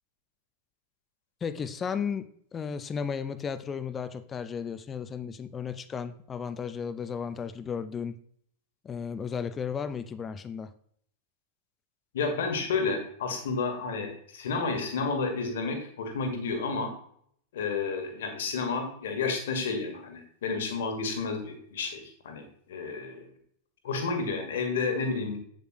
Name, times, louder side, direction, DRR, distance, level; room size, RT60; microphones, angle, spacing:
voice 1, 1.4-8.2 8.8-10.7, left 6 dB, 20° left, 14 dB, 0.5 m, -34 dB
voice 2, 12.1-16.9 17.5-23.3 23.8-25.4, left 4 dB, 60° left, 5 dB, 1.9 m, -31 dB
8.2 x 7.8 x 3.1 m, 0.63 s
figure-of-eight pair, 90°, 0 cm